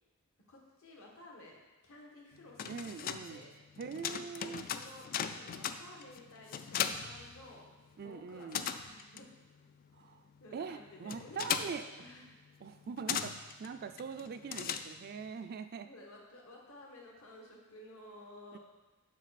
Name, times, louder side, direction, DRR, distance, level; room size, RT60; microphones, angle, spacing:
voice 1, 0.5-1.6 1.8-2.7 3.2-3.5 4.0-7.6 8.0-9.3 10.4-12.2 15.8-18.6, left 1 dB, 65° left, -2 dB, 1.5 m, -54 dB
sound 1, 2.3-15.3, left 8 dB, 40° left, 0.3 m, -39 dB
voice 2, 2.6-3.5 3.8-4.6 8.0-8.7 9.9-10.3 10.5-11.8 12.6-15.9 18.5-18.6, right 5 dB, 45° right, 8 dB, 0.3 m, -43 dB
7.4 x 5.5 x 4.1 m, 1.1 s
head